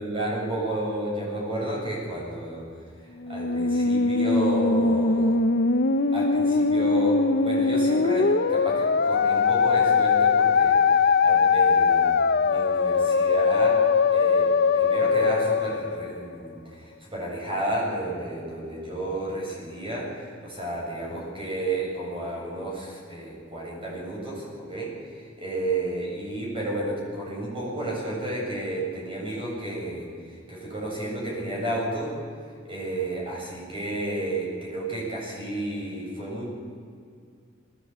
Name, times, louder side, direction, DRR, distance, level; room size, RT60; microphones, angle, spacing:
voice 1, 0.0-2.6 3.3-5.4 6.1-10.8 11.1-13.9 14.1-24.9 25.4-30.1 30.5-32.2 32.7-36.5, right 1 dB, 30° right, -3 dB, 7.8 m, -31 dB
Musical instrument, 3.2-16.6, left 4 dB, 55° left, 0.6 m, -21 dB
20.5 x 17.0 x 8.8 m, 2.3 s
head